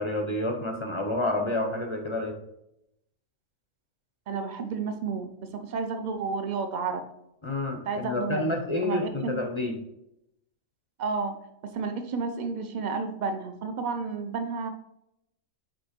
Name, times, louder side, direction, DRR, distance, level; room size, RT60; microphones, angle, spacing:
voice 1, 0.0-2.4 7.4-9.8, left 2 dB, 30° left, 3 dB, 0.6 m, -29 dB
voice 2, 4.3-5.3 5.5-7.0 7.9-8.5 8.8-9.4 11.0-11.3 11.7-14.7, right 4 dB, 40° right, 6 dB, 0.7 m, -31 dB
5.3 x 5.2 x 4.4 m, 0.81 s
omnidirectional pair, 1.5 m